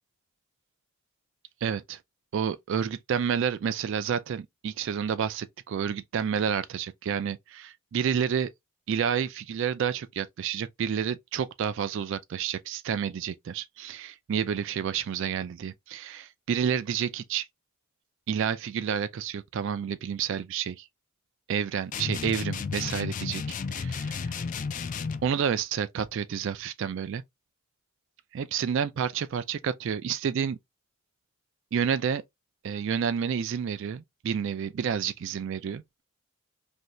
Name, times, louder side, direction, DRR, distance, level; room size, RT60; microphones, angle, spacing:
voice 1, 1.6-2.0 2.3-8.5 8.9-17.5 18.3-20.9 21.5-23.4 23.7-24.3 25.2-27.2 28.3-30.6 31.7-32.2 32.6-35.8, right 7 dB, 60° right, 0.3 m, -29 dB
sound 1, 21.9-25.3, left 5 dB, 35° left, 0.3 m, -33 dB
2.8 x 2.6 x 3.1 m
head